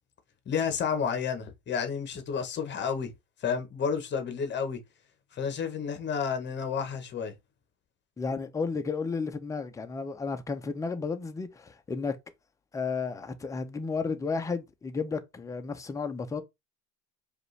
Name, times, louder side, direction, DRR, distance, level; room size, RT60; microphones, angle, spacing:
voice 1, 0.5-3.1 3.4-4.8 5.3-7.3, left 6 dB, 30° left, 0.8 m, -31 dB
voice 2, 8.2-12.2 12.7-16.4, left 4 dB, 10° left, 0.3 m, -33 dB
5.0 x 2.4 x 3.1 m
cardioid pair, 150°, 35 cm